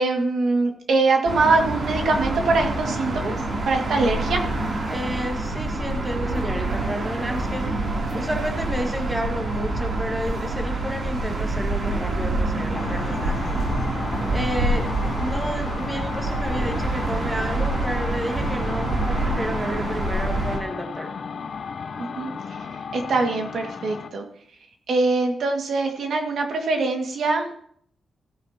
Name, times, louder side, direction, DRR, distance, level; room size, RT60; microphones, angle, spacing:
voice 1, 0.0-3.3 3.7-4.4 22.0-22.3 22.9-24.2 24.9-27.5, right 3 dB, 70° right, 3 dB, 2.0 m, -23 dB
sound 1, 1.2-20.6, right 2 dB, 50° right, 3.0 m, -26 dB
voice 2, 4.9-13.5 14.3-14.9 15.1-21.1, equal, 10° right, 3 dB, 1.6 m, -31 dB
sound 2, 12.7-24.2, left 5 dB, 55° left, 0.8 m, -34 dB
16.5 x 9.7 x 2.9 m, 0.62 s
wide cardioid pair, 120°, 0 cm